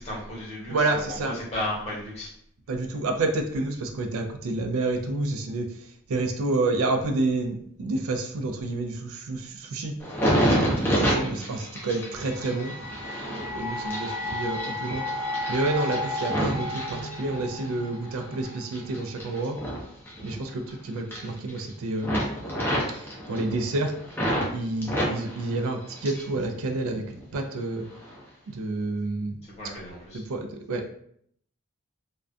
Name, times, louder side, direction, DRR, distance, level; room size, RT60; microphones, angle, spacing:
voice 1, 0.0-2.3 29.5-30.2, left 1 dB, 30° left, -6 dB, 0.9 m, -34 dB
voice 2, 0.7-1.4 2.7-10.0 10.4-12.8 13.5-19.6 20.2-22.2 22.9-23.9 24.5-27.0 27.3-27.8 28.5-29.4 30.1-30.9, right 2 dB, 80° right, 5 dB, 0.4 m, -29 dB
sound 1, 10.0-17.7 18.1-20.7 21.0-21.7 22.0-24.5 24.8-26.4 26.7-27.4 27.9-28.2, equal, 10° left, 0.4 m, -29 dB
sound 2, 12.0-19.1, left 1 dB, 70° left, 0.6 m, -34 dB
2.3 x 2.1 x 2.5 m, 0.66 s
head